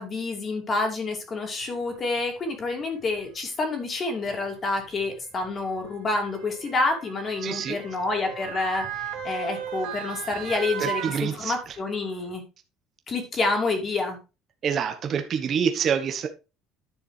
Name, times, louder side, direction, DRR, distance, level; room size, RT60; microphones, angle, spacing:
voice 1, 0.0-8.9 9.2-12.4 13.1-14.2, left 3 dB, 25° left, 2.6 m, -28 dB
Motor vehicle (road) / Siren, 1.9-2.0 3.0-3.2 4.3-11.9 12.3-12.4, right 9 dB, 85° right, 2.5 m, -37 dB
voice 2, 7.4-7.8 10.8-11.5 14.6-16.3, right 7 dB, 35° right, 1.1 m, -26 dB
10.5 x 6.7 x 3.4 m
cardioid pair, 160°, 0 cm